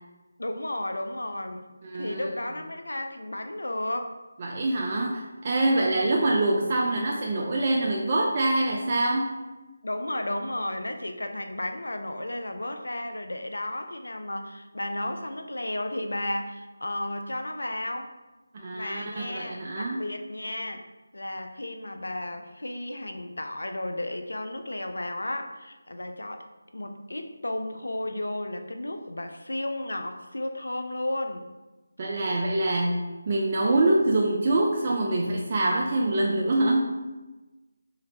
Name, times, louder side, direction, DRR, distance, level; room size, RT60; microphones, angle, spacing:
voice 1, 0.4-1.7 1.9-4.1 5.7-6.2 9.8-18.1 18.7-20.8 21.1-26.4 26.7-31.5, left 1 dB, 80° left, 6 dB, 0.4 m, -33 dB
voice 2, 1.8-2.3 4.4-9.3 18.5-20.0 32.0-36.9, right 2 dB, 35° right, -2 dB, 0.4 m, -25 dB
3.8 x 3.1 x 2.8 m, 1.1 s
figure-of-eight pair, 160°, 0 cm